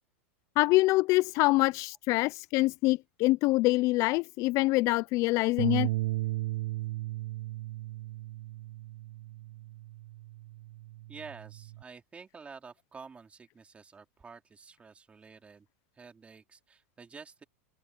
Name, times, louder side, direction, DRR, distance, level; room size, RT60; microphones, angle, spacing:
voice 1, 0.6-5.9, left 21 dB, 45° left, 0.5 m, -25 dB
sound 1, 5.6-11.8, right 17 dB, 70° right, 1.0 m, -35 dB
voice 2, 11.1-15.7 15.9-17.4, right 5 dB, 15° right, 4.2 m, -49 dB
open air
hypercardioid pair, 120°, 7 cm